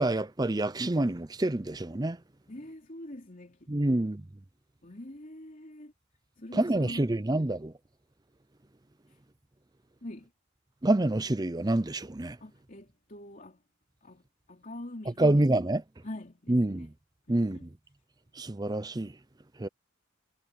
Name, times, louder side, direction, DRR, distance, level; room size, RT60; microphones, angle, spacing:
voice 1, 0.0-2.2 3.7-4.2 6.5-7.7 10.8-12.4 15.2-15.8 16.5-16.9 17.3-17.6 18.4-19.1 19.6-19.7, right 1 dB, 20° right, 0.6 m, -27 dB
voice 2, 2.5-4.1 4.8-5.9 6.4-7.5 9.1-9.2 10.0-10.3 12.4-13.6 14.0-15.5 16.0-16.9 17.3-17.7, left 1 dB, 40° left, 3.3 m, -45 dB
head